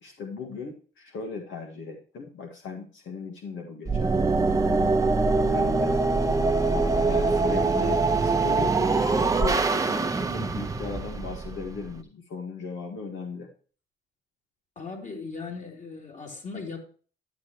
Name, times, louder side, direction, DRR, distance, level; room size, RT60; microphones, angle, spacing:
voice 1, 0.0-4.9 5.5-6.0 6.6-13.5, left 5 dB, 75° left, 2 dB, 1.8 m, -37 dB
sound 1, 3.8-12.0, right 3 dB, 15° right, 0.9 m, -24 dB
voice 2, 14.7-16.8, left 4 dB, 40° left, 2 dB, 3.1 m, -38 dB
11.0 x 7.4 x 3.0 m, 0.40 s
cardioid pair, 90°, 20 cm